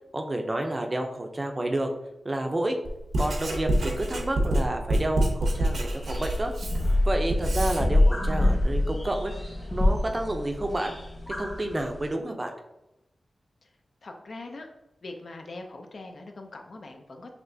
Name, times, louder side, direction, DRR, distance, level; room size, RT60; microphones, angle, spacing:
voice 1, 0.1-1.9 2.2-2.8 3.2-6.5 7.1-9.3 9.7-10.9 11.4-12.5, right 1 dB, 25° right, 4 dB, 0.5 m, -30 dB
Writing, 2.8-7.8, right 1 dB, 85° right, 0.8 m, -27 dB
sound 1, 5.5-12.1, left 1 dB, 30° left, 1.4 m, -26 dB
voice 2, 14.0-14.7 15.0-17.3, left 2 dB, 60° left, 3 dB, 0.5 m, -42 dB
6.0 x 2.8 x 2.7 m, 0.90 s
wide cardioid pair, 120°, 0 cm